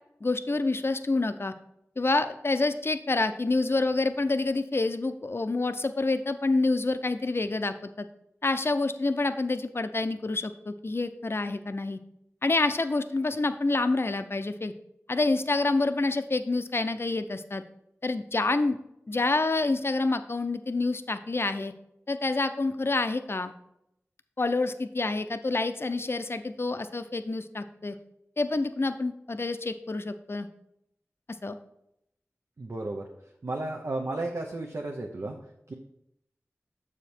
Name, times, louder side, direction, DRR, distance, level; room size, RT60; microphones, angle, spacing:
voice 1, 0.2-1.5 2.0-8.1 8.4-12.0 12.4-14.7 15.1-17.6 18.0-18.8 19.1-21.7 22.1-23.5 24.4-28.0 28.4-30.5 31.4-31.6, left 3 dB, 50° left, 10 dB, 0.5 m, -27 dB
voice 2, 32.6-33.0 33.4-35.4 35.7-35.8, right 2 dB, 65° right, 1 dB, 0.7 m, -33 dB
7.1 x 5.0 x 4.4 m, 0.79 s
wide cardioid pair, 50°, 5 cm